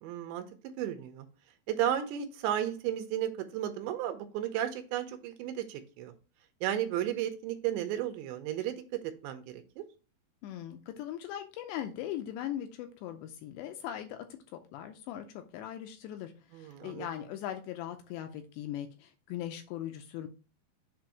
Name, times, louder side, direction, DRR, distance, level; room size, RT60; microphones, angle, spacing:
voice 1, 0.0-0.4 0.8-1.3 1.7-6.1 6.6-8.8 9.2-9.8 16.5-17.1, right 11 dB, 80° right, 7 dB, 2.8 m, -33 dB
voice 2, 10.4-14.3 14.5-20.3, left 11 dB, 85° left, 6 dB, 2.6 m, -40 dB
7.5 x 2.6 x 5.8 m, 0.35 s
omnidirectional pair, 5.3 m